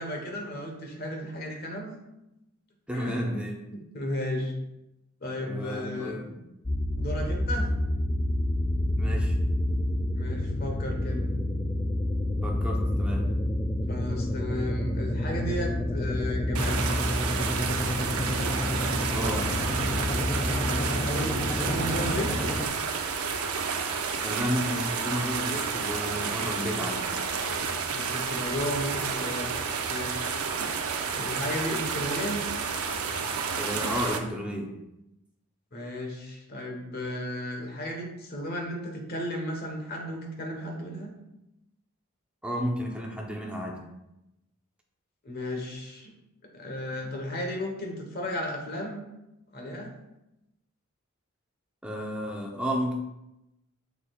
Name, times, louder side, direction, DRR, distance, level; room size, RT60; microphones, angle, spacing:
voice 1, 0.0-1.9 2.9-3.2 3.7-4.5 5.2-6.2 7.0-7.7 10.2-11.3 12.9-13.0 13.9-16.8 20.5-22.3 27.9-29.5 29.8-30.4 31.1-32.5 35.7-41.1 45.2-46.1 46.5-49.0 49.5-49.9, left 1 dB, 45° left, 1 dB, 1.3 m, -34 dB
voice 2, 2.9-3.6 5.4-6.4 9.0-9.4 12.4-13.3 19.1-19.5 24.2-27.0 30.6-30.7 33.6-34.7 42.4-43.8 51.8-52.9, equal, 5° right, -1 dB, 0.9 m, -32 dB
sound 1, 6.6-22.7, left 1 dB, 15° left, 0.4 m, -28 dB
sound 2, 16.5-34.2, right 5 dB, 90° right, 0.7 m, -30 dB
7.0 x 6.6 x 2.4 m, 0.90 s
head